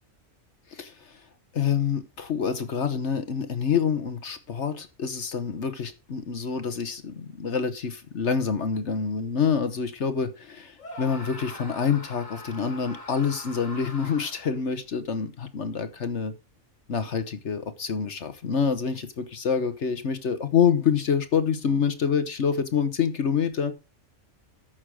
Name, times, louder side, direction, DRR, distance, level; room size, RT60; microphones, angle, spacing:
voice 1, 0.7-1.2 1.5-16.3 16.9-23.7, left 6 dB, 65° left, 10 dB, 1.3 m, -27 dB
Screaming, 10.8-14.6, left 2 dB, 85° left, 3.4 m, -42 dB
13.5 x 6.4 x 5.0 m, 0.29 s
omnidirectional pair, 1.3 m